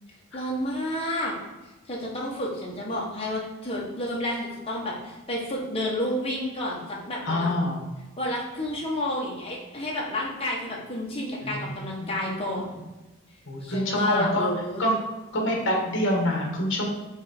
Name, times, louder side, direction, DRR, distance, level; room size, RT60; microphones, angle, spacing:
voice 1, 0.3-1.3 1.9-7.5 8.2-12.8 13.6-14.8, left 1 dB, 25° left, -4 dB, 1.4 m, -30 dB
voice 2, 7.2-7.8 11.4-12.1 13.5-14.5 14.8-15.0 15.3-16.9, left 1 dB, 55° left, 0 dB, 1.5 m, -26 dB
6.2 x 3.6 x 4.4 m, 1.1 s
head